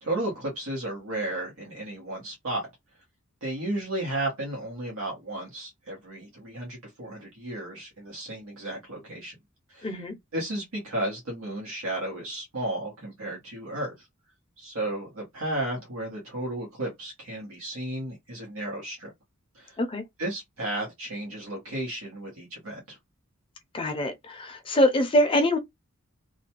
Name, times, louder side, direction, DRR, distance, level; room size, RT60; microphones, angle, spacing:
voice 1, 0.0-2.7 3.4-9.3 9.7-9.9 10.3-13.9 14.6-19.1 19.5-19.8 20.2-23.0, right 1 dB, 90° right, 1.1 m, -33 dB
voice 2, 9.8-10.1 19.8-20.0 23.7-25.6, left 1 dB, 25° left, 0.5 m, -24 dB
2.5 x 2.2 x 2.8 m
head